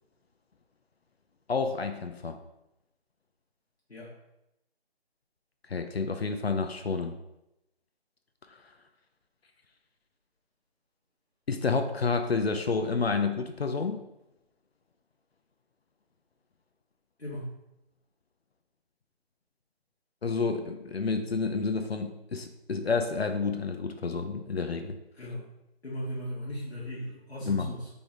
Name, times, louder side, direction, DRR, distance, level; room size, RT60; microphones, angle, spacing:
voice 1, 1.5-2.4 5.7-7.2 11.5-14.0 20.2-25.0 27.5-27.7, left 4 dB, 75° left, 6 dB, 0.6 m, -29 dB
voice 2, 17.2-17.6 25.2-25.5 25.8-27.9, equal, 90° left, -6 dB, 1.2 m, -37 dB
3.8 x 3.4 x 3.9 m, 0.88 s
figure-of-eight pair, 155°, 32 cm